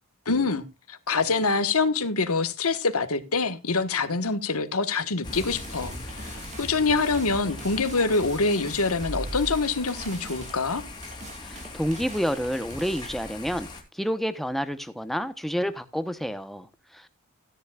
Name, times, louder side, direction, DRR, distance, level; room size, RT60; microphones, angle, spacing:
voice 1, 0.2-10.8, left 4 dB, 90° left, 1.4 m, -25 dB
Thunder / Rain, 5.2-13.8, left 2 dB, 20° left, 2.7 m, -40 dB
sound 1, 5.3-13.1, right 1 dB, 35° right, 2.9 m, -41 dB
voice 2, 11.4-13.7 13.9-17.1, equal, ahead, 0.9 m, -29 dB
16.0 x 10.0 x 2.4 m
head